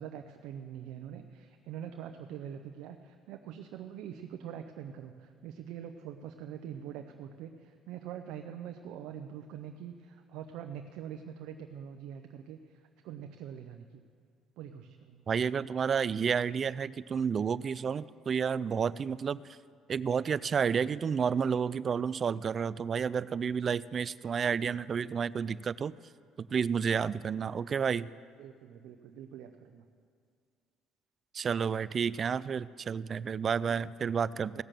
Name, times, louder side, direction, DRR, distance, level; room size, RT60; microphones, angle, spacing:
voice 1, 0.0-12.8 13.0-14.0 14.6-15.3 28.4-29.8 33.6-33.9 34.5-34.6, right 9 dB, 80° right, 6 dB, 0.7 m, -44 dB
voice 2, 15.3-19.4 19.9-25.9 26.4-28.1 31.3-34.6, right 6 dB, 40° right, 20 dB, 0.3 m, -30 dB
17.0 x 6.6 x 7.5 m, 2.2 s
supercardioid pair, 85°, 0 cm